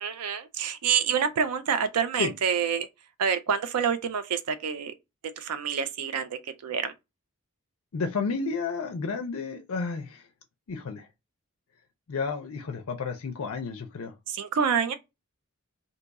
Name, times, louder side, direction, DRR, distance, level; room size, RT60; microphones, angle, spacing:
voice 1, 0.0-2.9 3.2-4.9 5.4-6.9 14.3-14.9, right 7 dB, 90° right, 0.4 m, -27 dB
voice 2, 7.9-10.2 10.7-11.1 12.1-14.1, left 4 dB, 65° left, 0.4 m, -31 dB
2.7 x 2.3 x 3.9 m
head